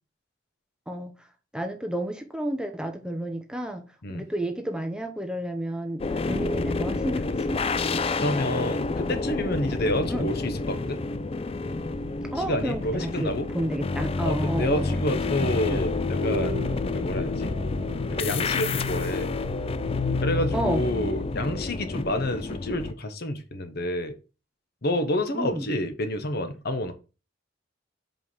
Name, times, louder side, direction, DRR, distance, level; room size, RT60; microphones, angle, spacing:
voice 1, 1.5-3.9 4.1-7.6 10.1-10.3 12.3-15.0 15.4-15.8 20.5-20.8 25.3-25.6, right 1 dB, 5° right, 0.8 m, -31 dB
sound 1, 6.0-22.9, left 3 dB, 30° left, 0.4 m, -29 dB
voice 2, 8.2-11.0 12.4-13.5 14.2-16.6 16.9-17.5 18.1-19.3 20.2-24.1 24.8-26.9, left 1 dB, 55° left, 1.0 m, -28 dB
sound 2, 16.2-21.6, left 2 dB, 55° right, 1.9 m, -32 dB
5.2 x 5.0 x 5.6 m
head